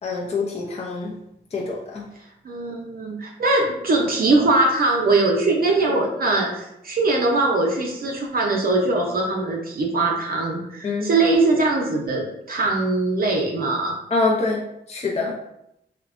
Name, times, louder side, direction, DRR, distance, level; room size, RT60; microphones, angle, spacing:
voice 1, 0.0-1.1 1.5-2.0 10.8-11.1 14.1-15.4, left 3 dB, 35° left, -3 dB, 0.5 m, -25 dB
voice 2, 2.2-14.0, right 2 dB, 50° right, -1 dB, 0.6 m, -21 dB
3.0 x 2.1 x 2.4 m, 0.81 s
cardioid pair, 55°, 19 cm